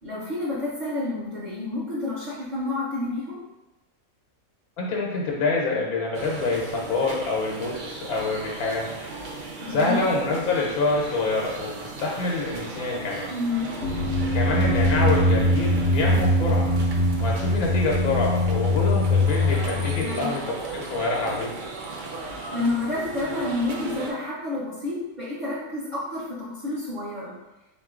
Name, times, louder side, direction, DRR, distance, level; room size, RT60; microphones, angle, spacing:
voice 1, 0.0-3.4 9.6-10.0 13.3-13.7 20.0-20.4 22.5-27.3, left 2 dB, 35° right, -8 dB, 1.0 m, -29 dB
voice 2, 4.8-8.9 9.7-13.3 14.3-16.7 17.2-21.5, left 3 dB, 85° left, -2 dB, 1.2 m, -26 dB
sound 1, 6.1-24.1, right 3 dB, 70° right, 0.4 m, -37 dB
sound 2, 13.8-20.0, left 1 dB, 70° left, 0.9 m, -22 dB
3.7 x 3.0 x 3.6 m, 1.0 s
omnidirectional pair, 1.5 m